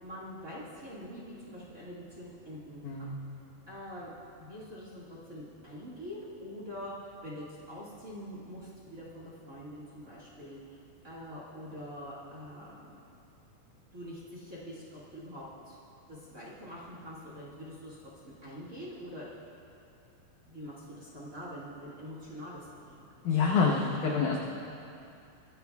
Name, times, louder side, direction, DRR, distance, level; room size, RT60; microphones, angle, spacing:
voice 1, 0.0-3.1 3.7-13.0 13.9-15.8 16.1-19.3 20.4-23.0, equal, 35° right, -7 dB, 1.4 m, -45 dB
voice 2, 2.8-3.2 23.2-24.4, left 5 dB, 75° left, -2 dB, 1.9 m, -27 dB
23.5 x 14.5 x 2.4 m, 2.6 s
omnidirectional pair, 4.7 m